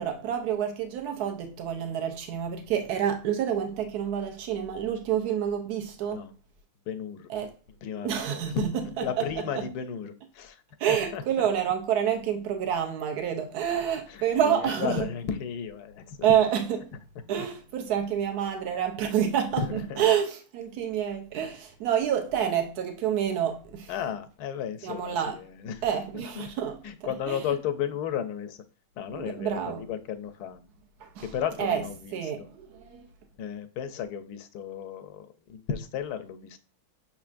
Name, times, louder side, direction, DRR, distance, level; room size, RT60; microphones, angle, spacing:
voice 1, 0.0-6.2 7.3-7.5 8.0-8.8 9.5-9.6 10.8-15.1 16.2-16.8 17.3-23.9 24.8-25.4 25.8-26.8 27.3-27.4 29.1-29.9 31.0-31.3 31.6-31.8 32.1-33.1, right 9 dB, 85° right, 1.2 m, -28 dB
voice 2, 6.9-7.3 7.8-8.7 9.0-10.6 10.9-11.5 14.1-16.3 17.4-17.5 19.6-20.0 23.9-25.8 26.3-26.4 26.8-28.6 29.0-30.6 31.2-32.5 33.4-36.6, left 8 dB, 90° left, 1.1 m, -34 dB
6.2 x 3.4 x 2.5 m
omnidirectional pair, 1.6 m